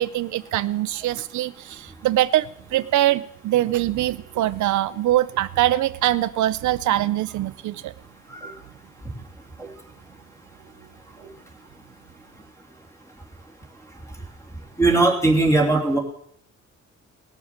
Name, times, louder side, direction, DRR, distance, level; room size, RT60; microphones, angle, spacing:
voice 1, 0.0-7.9, right 14 dB, 80° right, 14 dB, 0.6 m, -23 dB
voice 2, 14.8-16.0, right 2 dB, 10° left, 1 dB, 2.9 m, -19 dB
18.0 x 7.2 x 7.3 m, 0.67 s
cardioid pair, 145°, 29 cm